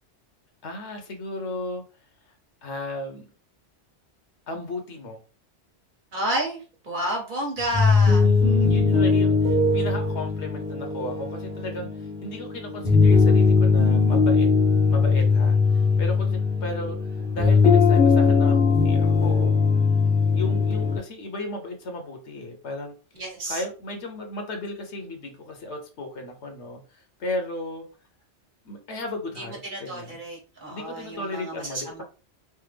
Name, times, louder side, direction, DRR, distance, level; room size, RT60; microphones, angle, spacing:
voice 1, 0.6-1.8 2.6-3.3 4.5-5.2 8.2-11.9 12.2-14.5 14.9-19.6 20.3-22.9 23.5-27.8 28.6-30.2 30.7-32.0, left 2 dB, 75° left, 4 dB, 1.1 m, -35 dB
voice 2, 6.1-8.8 23.1-23.6 29.3-32.0, right 1 dB, 45° right, -1 dB, 1.2 m, -31 dB
sound 1, 7.6-21.0, left 4 dB, 5° left, 0.8 m, -20 dB
3.4 x 2.0 x 3.3 m, 0.35 s
omnidirectional pair, 1.2 m